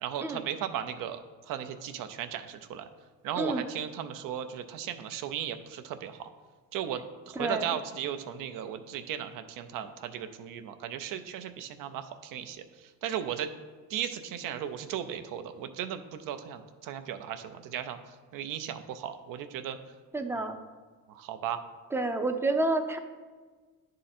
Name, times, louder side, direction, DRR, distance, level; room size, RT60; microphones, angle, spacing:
voice 1, 0.0-1.2 1.5-2.9 3.2-6.3 6.7-13.5 13.9-18.0 18.3-19.8 20.3-20.5 21.1-21.6, right 9 dB, 85° right, 9 dB, 0.6 m, -36 dB
voice 2, 3.4-3.7 7.4-7.7 20.1-20.6 21.9-23.0, right 2 dB, 10° right, 6 dB, 0.4 m, -29 dB
10.0 x 3.8 x 4.2 m, 1.4 s
cardioid pair, 140°, 32 cm